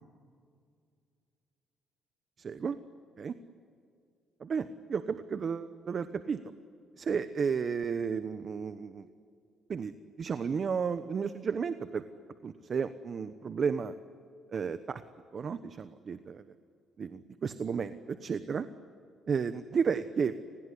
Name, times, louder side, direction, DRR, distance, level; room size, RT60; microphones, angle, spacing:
voice 1, 2.4-2.8 3.2-3.3 4.4-6.4 7.0-9.1 9.7-9.9 10.2-12.0 12.4-13.9 14.5-15.0 15.3-16.4 17.0-18.6 19.3-20.3, right 6 dB, 50° right, 12 dB, 1.1 m, -33 dB
28.5 x 20.0 x 10.0 m, 2.4 s
cardioid pair, 90°, 0 cm